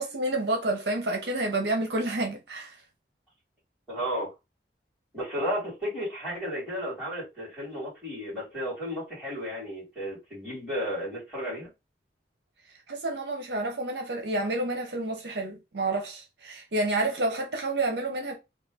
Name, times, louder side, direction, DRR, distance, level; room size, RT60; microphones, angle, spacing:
voice 1, 0.0-2.8 12.9-18.3, right 2 dB, 70° right, 0.7 m, -29 dB
voice 2, 3.9-4.3 5.1-11.7, equal, 5° right, 2.0 m, -33 dB
3.1 x 2.2 x 3.4 m
head